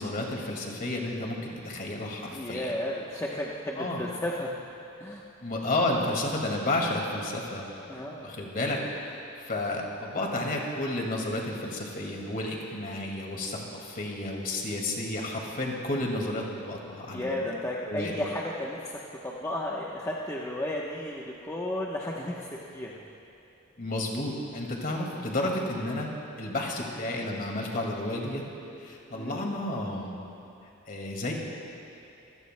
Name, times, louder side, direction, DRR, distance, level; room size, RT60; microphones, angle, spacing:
voice 1, 0.0-2.7 3.8-4.0 5.4-7.7 7.9-17.4 17.9-18.2 23.8-26.1 26.4-28.5 28.8-30.2 30.9-31.3, left 1 dB, 45° left, 0 dB, 2.1 m, -31 dB
voice 2, 2.3-4.5 5.0-5.2 7.9-8.4 17.1-23.0 29.1-29.5, left 1 dB, 15° left, -4 dB, 0.9 m, -33 dB
25.5 x 16.5 x 2.2 m, 2.8 s
head